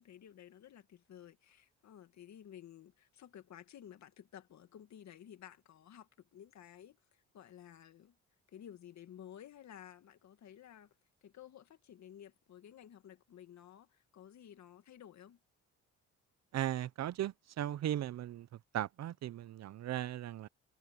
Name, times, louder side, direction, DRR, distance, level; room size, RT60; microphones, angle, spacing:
voice 1, 0.0-8.2 8.5-10.9 11.2-15.4, left 10 dB, 65° left, 2.1 m, -54 dB
voice 2, 16.5-18.5 18.7-20.5, right 12 dB, 60° right, 0.7 m, -37 dB
cardioid pair, 90°, 30 cm